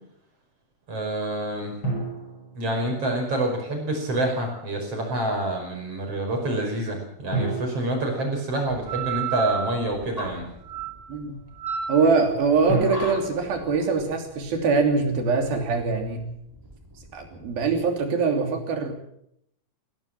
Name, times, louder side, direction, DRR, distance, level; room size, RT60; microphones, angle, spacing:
voice 1, 0.9-1.8 2.6-10.4, right 1 dB, 35° right, 2 dB, 6.1 m, -27 dB
sound 1, 1.8-3.4 7.3-9.2 12.7-14.9, right 2 dB, 30° left, 8.5 m, -33 dB
sound 2, 8.7-17.9, right 6 dB, 5° right, 3.2 m, -35 dB
voice 2, 11.9-16.3 17.1-18.9, right 4 dB, 65° right, 4 dB, 4.8 m, -23 dB
21.5 x 16.5 x 7.6 m, 0.74 s
omnidirectional pair, 4.5 m